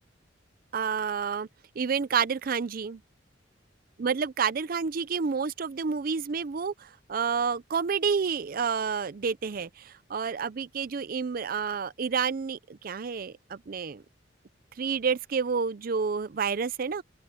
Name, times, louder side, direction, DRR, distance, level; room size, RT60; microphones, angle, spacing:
voice 1, 0.7-1.5 1.8-3.0 4.0-14.0 14.8-17.0, right 6 dB, 50° right, 0.5 m, -29 dB
open air
head